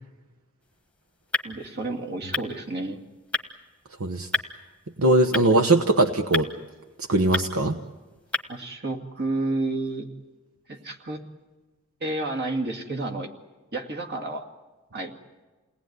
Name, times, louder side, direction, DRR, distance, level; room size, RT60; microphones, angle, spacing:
sound 1, 0.6-8.7, left 2 dB, 5° left, 1.3 m, -35 dB
voice 1, 1.4-3.0 8.5-10.1 10.7-11.2 12.0-13.3 13.7-14.5 14.9-15.1, right 2 dB, 50° right, 1 dB, 2.3 m, -30 dB
voice 2, 5.0-6.5 7.1-7.8, right 2 dB, 75° right, 5 dB, 1.1 m, -20 dB
28.5 x 19.0 x 9.5 m, 1.3 s
head